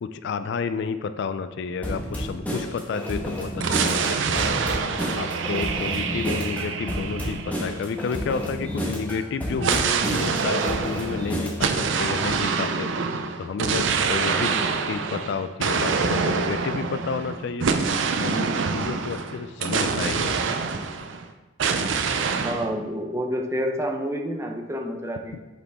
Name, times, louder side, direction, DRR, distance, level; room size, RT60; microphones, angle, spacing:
voice 1, 0.0-4.5 5.2-12.9 13.4-14.5 14.9-17.7 18.2-20.4 25.3-25.4, left 5 dB, 60° left, 11 dB, 0.3 m, -31 dB
sound 1, 1.8-11.8, equal, 10° left, 1.2 m, -30 dB
sound 2, 3.6-8.3 9.6-21.2 21.6-22.7, right 5 dB, 70° right, 0.5 m, -26 dB
voice 2, 22.4-25.4, equal, 15° right, 3 dB, 0.6 m, -29 dB
7.9 x 5.1 x 3.5 m, 1.2 s
head